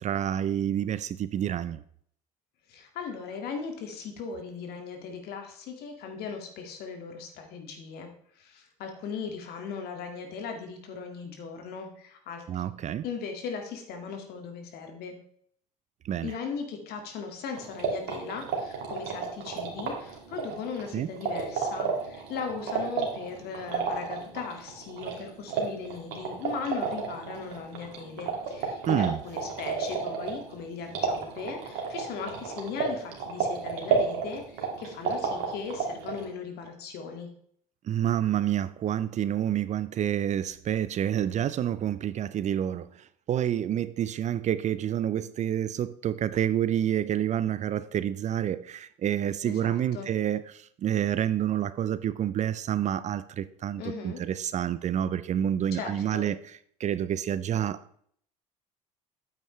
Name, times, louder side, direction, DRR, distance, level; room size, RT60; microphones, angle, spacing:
voice 1, 0.0-1.8 12.5-13.0 16.0-16.3 20.9-21.1 28.9-29.2 37.8-56.4 56.8-58.0, right 10 dB, 40° right, 0.5 m, -28 dB
voice 2, 2.7-8.1 8.4-12.4 13.0-15.2 16.2-37.3 49.4-50.1 53.8-54.2 55.7-56.3, left 5 dB, 60° left, 2.0 m, -38 dB
sound 1, 17.6-36.2, right 5 dB, 70° right, 2.3 m, -32 dB
9.0 x 8.2 x 3.2 m
hypercardioid pair, 70°, 18 cm